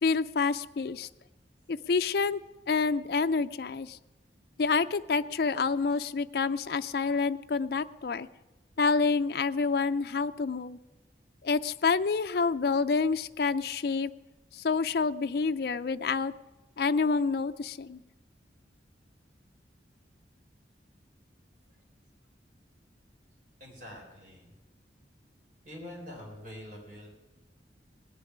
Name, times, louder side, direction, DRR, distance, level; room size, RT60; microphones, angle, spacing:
voice 1, 0.0-1.1 1.7-2.4 2.7-4.0 4.6-8.3 8.8-10.8 11.4-14.1 14.5-16.3 16.8-18.0, left 4 dB, 60° left, 9 dB, 0.4 m, -28 dB
voice 2, 23.6-24.5 25.6-27.1, left 1 dB, 45° right, -2 dB, 4.5 m, -45 dB
18.5 x 6.9 x 9.9 m, 1.1 s
head